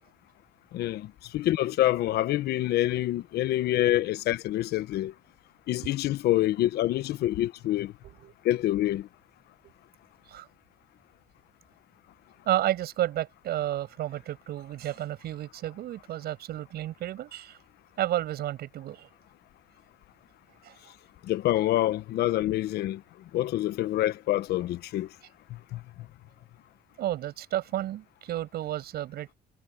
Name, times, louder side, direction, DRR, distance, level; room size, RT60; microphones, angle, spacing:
voice 1, 0.7-5.1 5.7-7.9 8.4-9.1 21.2-23.0 23.3-25.1 25.5-25.8, left 14 dB, 75° left, 1.1 m, -26 dB
voice 2, 12.4-17.6 18.0-19.1 20.6-20.8 27.0-29.4, right 13 dB, 70° right, 8.0 m, -31 dB
cardioid pair, 110°, 17 cm